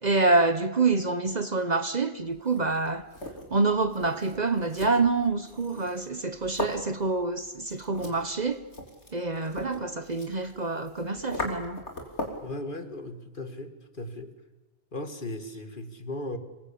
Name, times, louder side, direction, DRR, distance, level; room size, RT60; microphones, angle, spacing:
voice 1, 0.0-3.0 3.5-8.7 9.1-11.8, right 3 dB, 40° right, 1.0 m, -26 dB
sound 1, 2.3-12.5, left 1 dB, 85° left, 3.9 m, -40 dB
voice 2, 12.4-14.3 14.9-16.4, left 1 dB, 50° left, 2.2 m, -37 dB
26.5 x 21.5 x 8.6 m
omnidirectional pair, 1.1 m